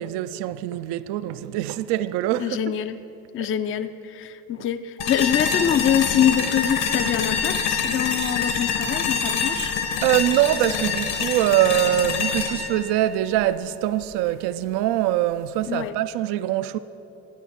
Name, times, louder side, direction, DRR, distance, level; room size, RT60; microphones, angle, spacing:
voice 1, 0.0-2.6 3.4-3.5 10.0-16.8, right 13 dB, 60° right, 0.5 m, -23 dB
voice 2, 2.4-3.0 3.3-9.8 15.7-16.0, left 9 dB, 30° left, 0.4 m, -24 dB
sound 1, 5.0-14.0, left 6 dB, 60° left, 1.1 m, -26 dB
12.5 x 9.8 x 4.3 m
figure-of-eight pair, 45°, 46 cm